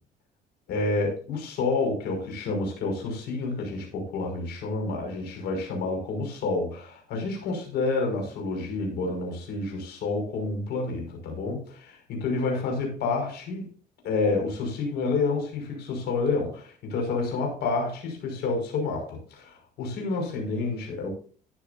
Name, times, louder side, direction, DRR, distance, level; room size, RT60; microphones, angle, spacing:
voice 1, 0.7-13.7 14.0-21.1, left 3 dB, 75° left, 1 dB, 5.8 m, -29 dB
14.0 x 10.5 x 2.7 m, 0.40 s
cardioid pair, 110°, 17 cm